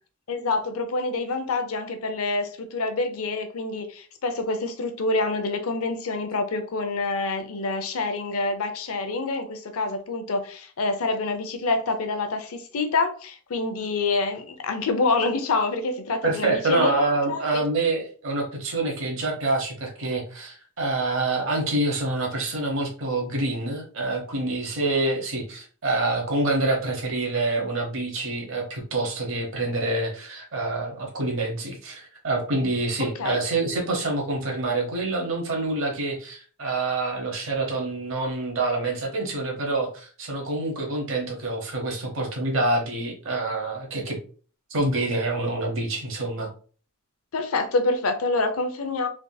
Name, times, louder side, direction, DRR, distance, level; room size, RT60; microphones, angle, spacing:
voice 1, 0.3-16.9 17.3-17.7 33.0-33.4 47.3-49.1, left 3 dB, 80° left, 0.5 m, -27 dB
voice 2, 16.2-44.2 44.7-46.5, right 2 dB, 65° right, 0.9 m, -26 dB
3.4 x 2.7 x 2.2 m
head